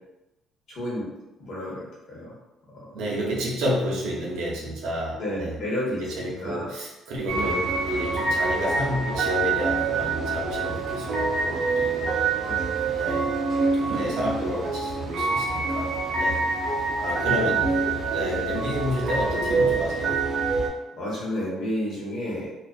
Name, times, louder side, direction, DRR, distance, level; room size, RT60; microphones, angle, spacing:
voice 1, 0.7-1.1 1.4-2.3 5.2-6.7 7.3-7.6 12.4-13.0 17.3-17.5 18.5-18.6 21.0-22.5, left 1 dB, 50° left, -6 dB, 1.1 m, -31 dB
voice 2, 2.9-5.6 5.9-12.2 12.9-13.3 13.6-16.4 17.0-20.2, equal, 85° right, -3 dB, 0.7 m, -30 dB
sound 1, 7.3-20.7, right 4 dB, 40° right, 0.5 m, -26 dB
2.5 x 2.3 x 2.3 m, 0.94 s
cardioid pair, 170°, 0 cm